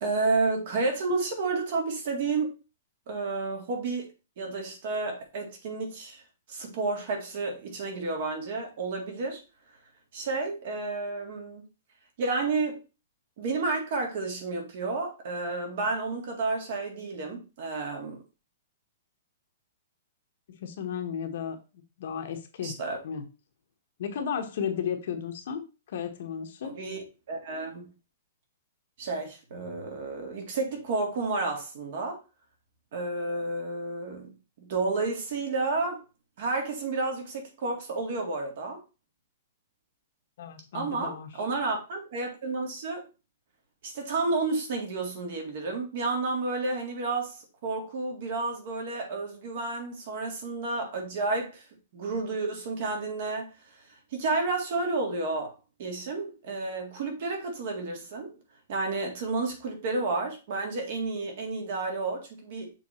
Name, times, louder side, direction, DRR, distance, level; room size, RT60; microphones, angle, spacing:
voice 1, 0.0-2.5 3.1-4.1 4.4-6.2 6.5-9.4 10.1-11.6 12.2-12.8 13.4-18.2 22.6-23.0 26.7-27.9 29.0-32.2 32.9-36.0 36.4-38.8 40.7-43.1 43.8-51.7 51.9-53.5 54.1-55.5 55.8-58.3 58.7-62.7, right 3 dB, 45° right, 1.9 m, -31 dB
voice 2, 20.5-21.6 22.0-22.8 23.0-23.2 24.0-25.6 25.9-26.8 40.4-41.3, left 7 dB, 50° left, 1.1 m, -34 dB
6.7 x 3.5 x 4.3 m
hypercardioid pair, 175°, 0 cm